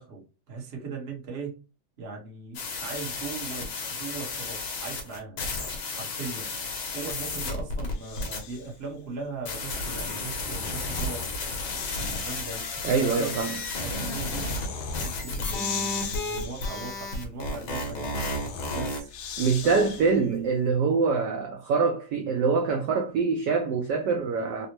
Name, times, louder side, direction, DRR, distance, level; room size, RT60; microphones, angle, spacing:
voice 1, 0.0-1.6 2.0-5.5 5.9-6.5 6.9-11.3 12.1-13.3 13.8-14.5 15.0-18.3 18.7-19.1 19.6-20.1, right 4 dB, 45° right, 0.8 m, -39 dB
sound 1, 2.5-8.4 9.4-19.0, left 2 dB, 65° left, 1.4 m, -33 dB
Breathing, 6.8-8.8 10.1-20.3, left 6 dB, 80° left, 1.5 m, -40 dB
voice 2, 12.8-13.6 19.4-24.7, right 5 dB, 75° right, 1.0 m, -24 dB
4.0 x 2.0 x 2.9 m
omnidirectional pair, 2.3 m